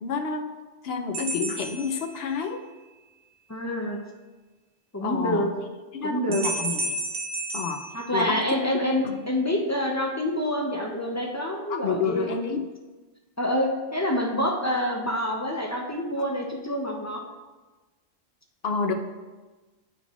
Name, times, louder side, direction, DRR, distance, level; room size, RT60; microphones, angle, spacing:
voice 1, 0.0-0.5 0.8-2.6 5.0-5.5 5.9-7.0 7.5-7.8 8.1-8.4 9.0-9.2 11.7-12.6 18.6-18.9, left 5 dB, 70° left, 5 dB, 0.8 m, -29 dB
sound 1, 1.1-2.7 6.3-8.8, right 2 dB, 60° right, 1.0 m, -33 dB
voice 2, 3.5-4.0 4.9-5.5 6.0-6.5 7.9-12.5 13.4-17.2, equal, 20° left, 0 dB, 0.4 m, -27 dB
10.5 x 3.9 x 2.4 m, 1.2 s
omnidirectional pair, 1.1 m